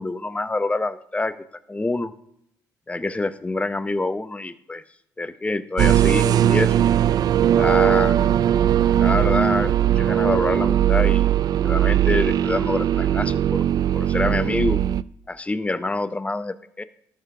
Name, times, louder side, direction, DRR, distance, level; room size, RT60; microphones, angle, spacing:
voice 1, 0.0-1.3 1.7-2.1 2.9-4.8 5.2-6.8 7.6-8.2 9.0-11.3 11.6-13.6 13.9-14.8 15.3-16.8, left 2 dB, 15° left, 12 dB, 0.8 m, -26 dB
sound 1, 5.8-15.0, right 11 dB, 55° right, 0.4 m, -19 dB
12.5 x 5.6 x 4.9 m, 0.72 s
supercardioid pair, 70°, 8 cm